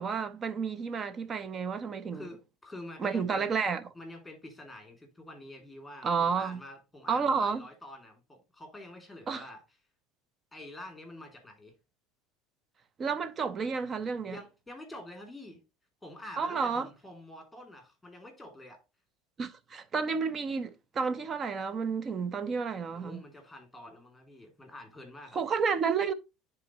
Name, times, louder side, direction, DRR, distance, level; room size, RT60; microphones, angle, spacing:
voice 1, 0.0-2.3 3.0-3.8 6.0-6.6 7.1-7.6 9.3-9.5 13.0-14.4 16.4-16.9 19.4-23.2 25.3-26.1, right 5 dB, 30° right, 0.7 m, -31 dB
voice 2, 2.1-3.5 3.9-9.6 10.5-11.7 14.3-15.6 16.0-18.8 22.9-25.4, left 1 dB, 5° left, 2.7 m, -47 dB
10.0 x 3.8 x 3.0 m
supercardioid pair, 110°, 0 cm